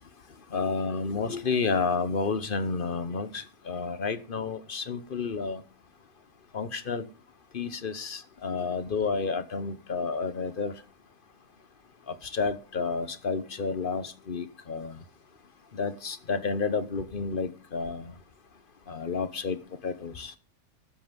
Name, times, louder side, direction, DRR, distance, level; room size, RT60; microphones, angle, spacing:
voice 1, 0.5-5.6 6.5-7.1 7.5-10.8 12.1-15.0 15.7-18.1 18.9-19.6 19.8-20.3, left 4 dB, 40° left, 13 dB, 1.1 m, -30 dB
13.0 x 8.0 x 5.3 m, 0.33 s
omnidirectional pair, 1.5 m